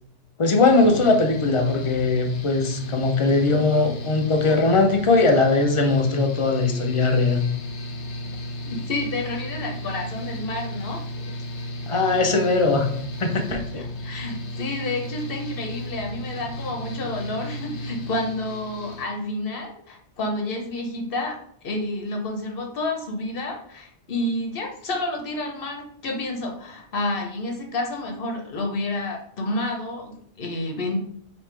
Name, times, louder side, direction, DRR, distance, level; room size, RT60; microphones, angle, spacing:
voice 1, 0.4-7.5 11.9-12.9 13.2-13.8, left 3 dB, 35° left, 4 dB, 0.6 m, -20 dB
Mechanical fan, 0.6-19.0, equal, 80° left, 1.0 m, -34 dB
voice 2, 8.6-11.0 13.5-21.4 21.6-31.0, left 2 dB, 55° left, 2 dB, 1.1 m, -30 dB
5.0 x 3.0 x 3.2 m, 0.64 s
omnidirectional pair, 1.1 m